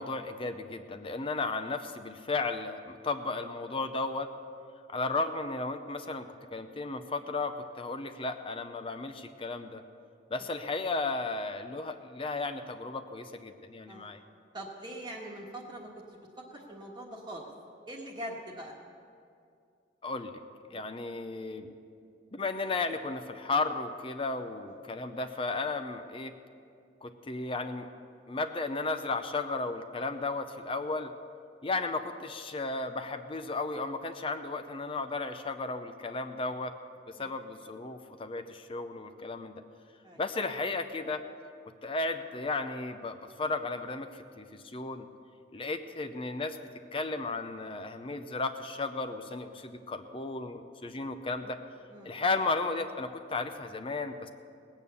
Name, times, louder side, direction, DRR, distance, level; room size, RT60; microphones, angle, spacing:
voice 1, 0.0-4.3 4.9-9.8 10.3-14.2 20.0-20.4 20.7-21.7 22.3-26.3 27.0-27.9 28.3-31.1 31.6-36.7 37.1-39.6 40.2-41.2 41.8-45.1 45.5-46.6 46.9-51.6 52.0-54.3, left 3 dB, 30° left, 8 dB, 0.6 m, -34 dB
voice 2, 14.5-17.5 17.9-18.7 20.7-20.8 24.7-24.8 37.2-37.3 40.0-40.2 51.9-52.2, right 1 dB, 25° right, -2 dB, 1.4 m, -43 dB
19.0 x 9.0 x 6.9 m, 2.4 s
head